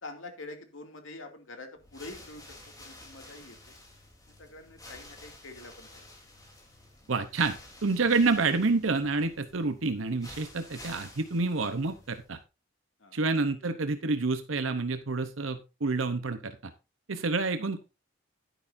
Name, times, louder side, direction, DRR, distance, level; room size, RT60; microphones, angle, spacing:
voice 1, 0.0-2.4 2.8-3.7 4.4-6.1 13.0-13.2, left 2 dB, 75° left, 4 dB, 2.5 m, -45 dB
sound 1, 1.8-12.4, left 2 dB, 20° left, 3.4 m, -51 dB
voice 2, 7.1-7.5 7.8-12.4 13.1-16.5 17.1-17.9, right 3 dB, 80° right, 9 dB, 0.9 m, -28 dB
11.0 x 10.0 x 2.7 m, 0.28 s
head